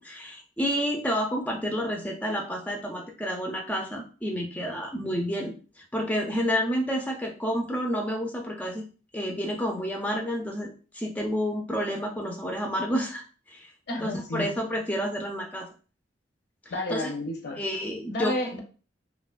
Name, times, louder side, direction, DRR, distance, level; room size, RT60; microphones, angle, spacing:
voice 1, 0.0-8.8 9.1-13.7 14.0-15.7 16.9-17.1 17.6-18.3, equal, 10° left, 0 dB, 0.3 m, -30 dB
voice 2, 13.9-14.5 16.7-17.6 18.1-18.6, left 1 dB, 65° left, 1 dB, 0.6 m, -31 dB
2.7 x 2.1 x 2.3 m, 0.36 s
head